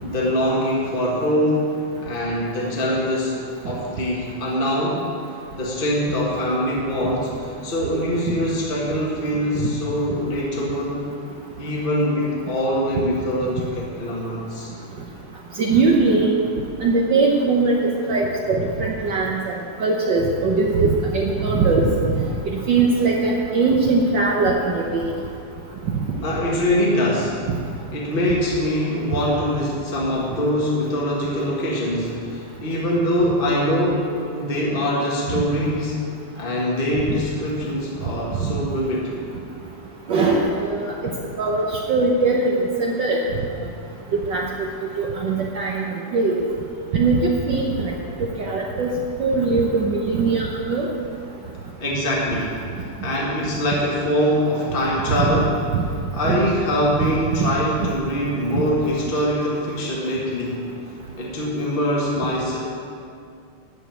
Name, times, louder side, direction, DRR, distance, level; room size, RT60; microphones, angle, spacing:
voice 1, 0.0-1.7 2.0-3.4 3.6-5.1 5.5-11.0 11.6-14.7 26.2-27.4 27.9-36.0 36.3-39.1 51.8-52.6 53.0-55.6 56.1-60.6 61.2-62.6, equal, 30° left, -5 dB, 1.1 m, -23 dB
voice 2, 15.6-16.3 16.8-17.7 18.0-22.2 22.5-25.1 38.4-38.5 40.1-40.9 41.4-43.2 44.3-44.7 45.0-46.4 46.9-47.9 48.4-48.9 49.2-50.9 55.2-55.3 55.7-55.8 56.3-56.4 57.0-57.1, right 3 dB, 80° right, -1 dB, 1.0 m, -20 dB
13.0 x 5.2 x 8.9 m, 2.4 s
omnidirectional pair, 3.3 m